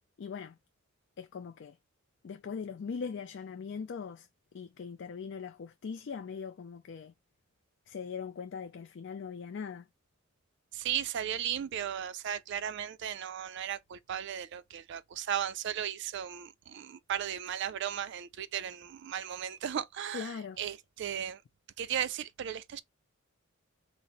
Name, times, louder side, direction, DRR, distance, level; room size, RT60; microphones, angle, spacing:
voice 1, 0.2-0.6 1.2-1.8 2.2-7.1 7.9-9.9 20.1-20.8, left 6 dB, 55° left, 0.4 m, -41 dB
voice 2, 10.7-20.3 20.6-21.4 21.8-22.8, right 9 dB, 55° right, 0.4 m, -36 dB
4.0 x 2.0 x 4.1 m
head